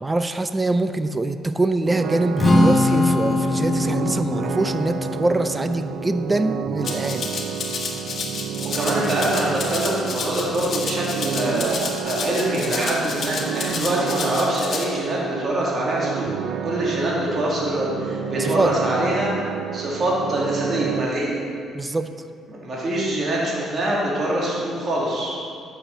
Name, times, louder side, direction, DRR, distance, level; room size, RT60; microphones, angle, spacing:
voice 1, 0.0-7.3 18.4-18.7 21.7-22.1, right 2 dB, 20° right, 10 dB, 0.5 m, -24 dB
sound 1, 1.9-21.1, right 9 dB, 75° right, 0.5 m, -30 dB
Strum, 2.4-8.6, left 2 dB, 20° left, 1.4 m, -23 dB
Rattle (instrument), 6.8-14.8, left 4 dB, 50° left, 1.7 m, -30 dB
voice 2, 8.7-16.3 16.6-19.3 19.7-21.4 22.6-25.4, right 1 dB, 45° right, -5 dB, 2.6 m, -24 dB
8.8 x 7.0 x 6.7 m, 2.4 s
cardioid pair, 80°, 0 cm